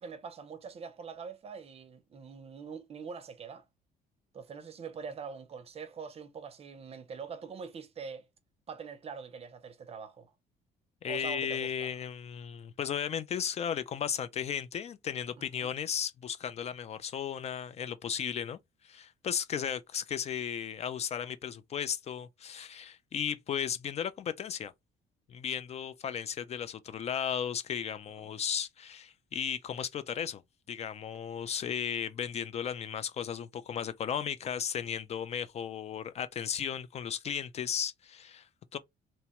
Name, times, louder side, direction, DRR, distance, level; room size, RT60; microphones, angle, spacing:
voice 1, 0.0-3.6 4.3-8.3 8.7-10.3 11.1-11.9 15.4-15.7 19.6-19.7 28.2-28.3, right 6 dB, 35° right, 0.5 m, -44 dB
voice 2, 11.0-18.6 18.8-24.7 25.3-30.4 30.7-38.8, left 8 dB, 40° left, 0.4 m, -35 dB
2.9 x 2.2 x 2.9 m
cardioid pair, 110°, 17 cm